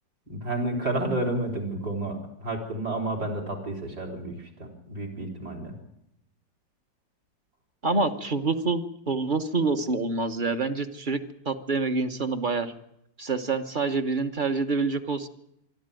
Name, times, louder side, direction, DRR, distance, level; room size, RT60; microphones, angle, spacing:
voice 1, 0.3-5.7, right 2 dB, 60° right, 0 dB, 4.7 m, -31 dB
voice 2, 7.8-11.2 11.4-12.7 13.2-15.3, right 3 dB, 30° right, 9 dB, 1.1 m, -27 dB
25.0 x 12.5 x 9.1 m, 0.79 s
omnidirectional pair, 1.9 m